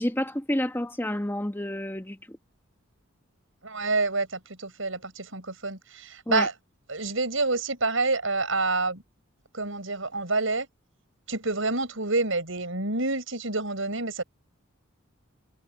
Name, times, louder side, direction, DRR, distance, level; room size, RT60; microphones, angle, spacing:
voice 1, 0.0-2.4 6.3-6.5, left 1 dB, 10° left, 1.3 m, -29 dB
voice 2, 3.6-6.5 6.9-9.0 9.5-10.7 11.3-14.2, right 3 dB, 65° right, 7.1 m, -28 dB
head